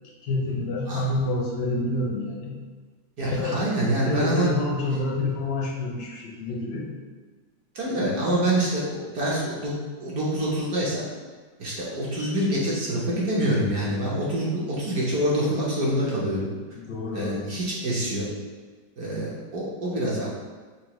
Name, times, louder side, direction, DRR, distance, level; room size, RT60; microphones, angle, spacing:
voice 1, 0.2-2.6 3.3-3.6 4.1-6.9 7.9-8.0 16.8-17.4, left 2 dB, 75° left, -2 dB, 1.1 m, -28 dB
voice 2, 3.2-4.5 7.7-9.7 10.0-11.0 11.6-16.5 17.1-18.3 19.0-20.3, right 1 dB, 60° right, -6 dB, 1.1 m, -26 dB
5.6 x 2.0 x 2.9 m, 1.4 s
omnidirectional pair, 2.0 m